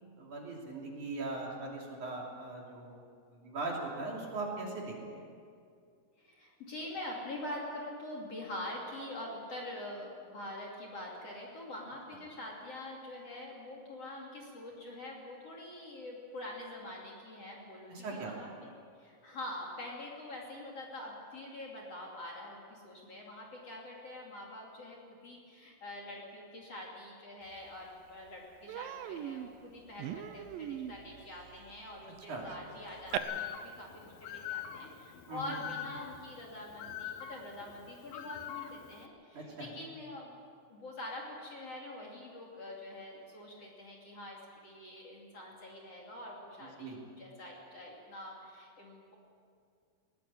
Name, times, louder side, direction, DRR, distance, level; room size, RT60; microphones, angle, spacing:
voice 1, 0.0-3.0 3.3-5.2 17.9-18.3 32.3-32.5 35.3-35.6 39.3-39.7 46.6-47.0, right 3 dB, 50° right, -1 dB, 4.2 m, -40 dB
voice 2, 6.2-18.7 19.0-40.3 40.7-49.1, left 1 dB, 40° left, -2 dB, 3.3 m, -45 dB
Human voice, 27.7-27.8 28.1-28.3 28.7-33.2, right 12 dB, 75° right, 2.2 m, -41 dB
Bird, 33.1-39.1, left 10 dB, 70° left, 2.7 m, -44 dB
20.5 x 19.0 x 8.6 m, 2.3 s
omnidirectional pair, 4.8 m